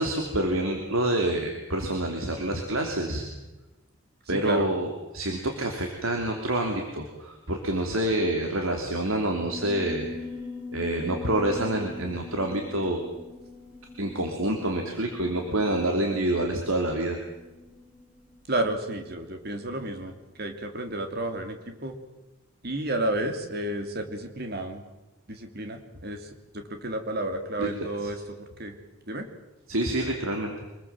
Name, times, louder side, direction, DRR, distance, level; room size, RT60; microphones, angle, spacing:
voice 1, 0.0-3.2 4.3-10.1 10.7-13.0 14.0-17.2 27.6-27.7 28.0-28.1 29.7-30.6, right 1 dB, 80° right, 2 dB, 3.1 m, -27 dB
voice 2, 4.3-4.7 18.5-21.9 22.6-24.8 25.3-26.3 26.5-28.8 29.1-29.3, right 1 dB, 50° right, 5 dB, 3.1 m, -31 dB
Piano, 9.5-20.2, left 4 dB, 5° right, 6.6 m, -42 dB
25.5 x 21.0 x 7.5 m, 1.1 s
head